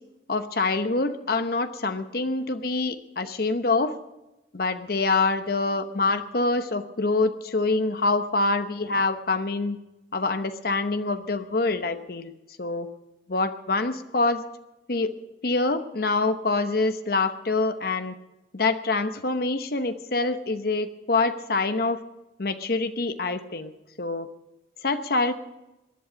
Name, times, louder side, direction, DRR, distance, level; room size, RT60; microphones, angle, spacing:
voice 1, 0.3-4.0 4.5-9.8 10.1-12.3 12.6-12.9 13.3-14.4 14.9-15.2 15.4-18.2 18.5-22.0 22.4-23.7 24.0-24.3 24.8-25.3, left 3 dB, 55° left, 9 dB, 1.0 m, -25 dB
20.0 x 11.0 x 5.2 m, 0.97 s
head